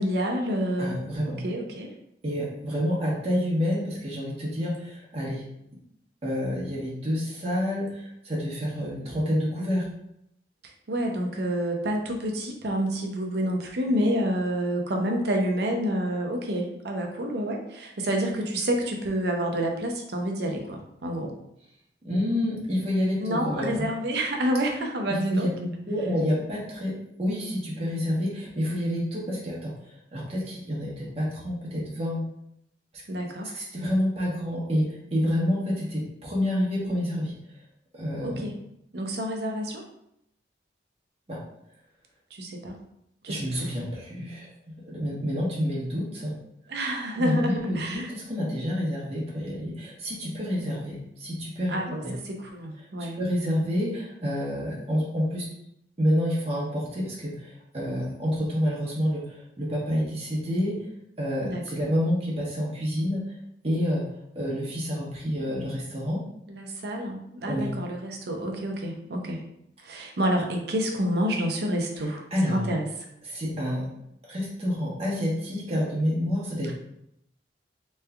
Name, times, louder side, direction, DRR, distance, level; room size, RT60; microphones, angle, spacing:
voice 1, 0.0-1.0 1.2-1.9 10.9-21.3 23.2-25.5 33.1-33.5 38.2-38.6 38.9-39.8 42.3-42.8 43.2-43.7 46.7-48.1 51.7-53.2 61.4-61.8 66.5-69.4 69.8-72.9 76.6-76.7, equal, 60° right, 2 dB, 0.6 m, -28 dB
voice 2, 0.8-1.4 2.2-5.4 6.2-9.9 22.0-23.8 25.3-29.7 30.1-32.2 33.5-34.9 35.1-37.3 37.9-38.4 41.3-41.4 43.3-44.5 44.9-46.3 47.1-52.1 53.2-55.5 56.0-60.8 61.2-63.2 63.6-64.0 64.3-66.2 67.5-67.7 72.3-72.6 73.2-73.8 74.3-76.7, equal, 35° right, -6 dB, 1.0 m, -28 dB
3.4 x 3.1 x 2.3 m, 0.77 s
head